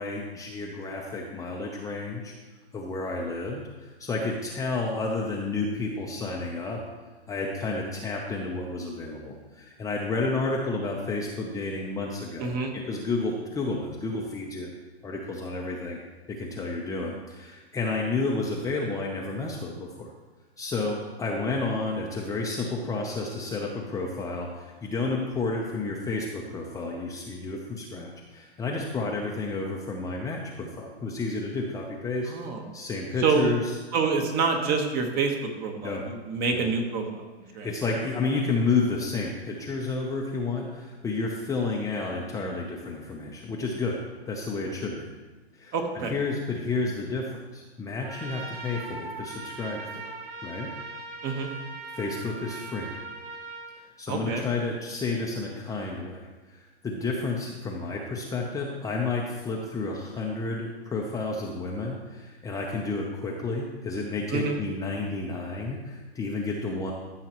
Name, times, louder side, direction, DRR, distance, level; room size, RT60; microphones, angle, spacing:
voice 1, 0.0-2.3 2.7-6.8 7.3-14.7 15.0-16.0 16.3-20.1 20.6-32.3 32.7-33.8 35.8-36.0 36.5-36.7 37.6-44.0 44.3-45.1 45.5-50.1 50.4-50.7 51.4-51.6 51.9-52.9 53.8-66.9, left 3 dB, 10° left, -1 dB, 0.6 m, -31 dB
voice 2, 12.4-12.7 32.3-32.6 33.2-33.5 33.9-37.2 37.5-37.7 45.7-46.1 51.2-51.5 54.1-54.5 64.3-64.6, right 4 dB, 30° right, 4 dB, 1.3 m, -27 dB
Trumpet, 48.0-53.7, right 3 dB, 65° right, 1.6 m, -40 dB
13.5 x 6.6 x 3.0 m, 1.3 s
hypercardioid pair, 130°, 33 cm